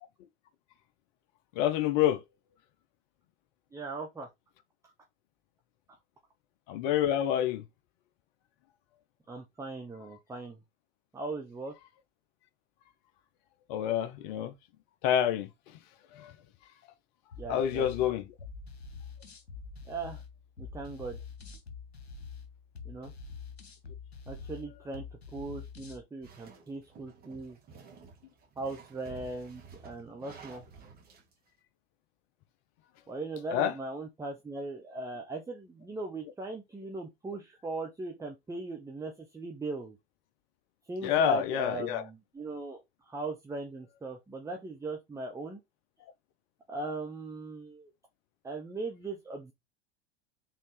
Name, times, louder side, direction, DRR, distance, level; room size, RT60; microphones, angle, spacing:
voice 1, 1.6-2.2 6.7-7.6 13.7-14.5 15.0-15.5 16.1-16.3 17.5-18.2 33.5-33.7 41.0-42.0, left 10 dB, 50° left, 0.7 m, -27 dB
voice 2, 3.7-4.3 9.3-10.6 11.1-11.7 17.4-18.1 19.9-20.2 20.6-21.2 22.8-23.1 24.3-25.0 25.3-27.6 28.6-30.6 33.1-40.0 40.9-45.6 46.7-47.9 48.4-49.5, right 2 dB, 10° right, 0.8 m, -39 dB
sound 1, 17.3-26.0, left 5 dB, 80° left, 1.1 m, -46 dB
sound 2, 26.2-31.3, right 5 dB, 30° right, 1.7 m, -52 dB
4.4 x 3.5 x 3.2 m
figure-of-eight pair, 90°, 31 cm